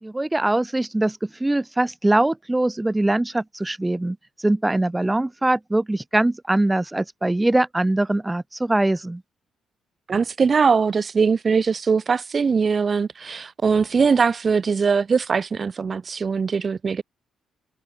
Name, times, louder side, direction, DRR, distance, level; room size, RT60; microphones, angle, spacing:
voice 1, 0.0-9.2, right 1 dB, 10° right, 0.8 m, -22 dB
voice 2, 10.1-17.0, right 5 dB, 40° right, 0.5 m, -21 dB
cardioid pair, 90°, 0 cm